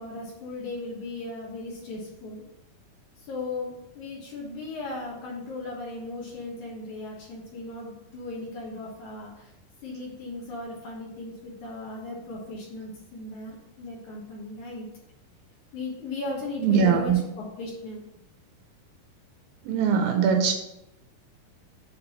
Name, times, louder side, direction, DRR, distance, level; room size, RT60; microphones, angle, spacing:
voice 1, 0.0-2.4 3.2-9.5 9.8-14.9 15.7-18.0, left 2 dB, 60° left, -3 dB, 2.3 m, -37 dB
voice 2, 16.6-17.2 19.6-20.6, right 6 dB, 80° right, 4 dB, 2.4 m, -21 dB
7.2 x 3.7 x 5.5 m, 0.85 s
omnidirectional pair, 4.4 m